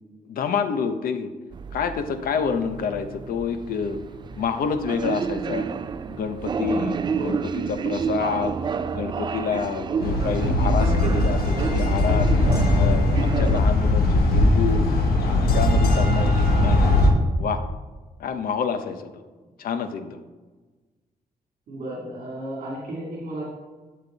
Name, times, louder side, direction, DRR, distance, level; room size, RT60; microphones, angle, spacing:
voice 1, 0.3-1.3 1.7-4.0 4.4-5.7 6.1-8.6 8.9-12.3 12.8-14.9 15.4-16.9 17.4-17.6 18.2-19.2 19.6-20.2, left 6 dB, 75° left, 9 dB, 0.8 m, -28 dB
sound 1, 1.5-13.6, right 6 dB, 30° right, 0.4 m, -30 dB
voice 2, 7.2-7.5 21.7-23.4, right 1 dB, 55° right, -5 dB, 2.7 m, -33 dB
sound 2, 10.0-17.1, left 2 dB, 90° left, 1.5 m, -20 dB
12.0 x 6.7 x 4.0 m, 1.3 s
wide cardioid pair, 165°, 15 cm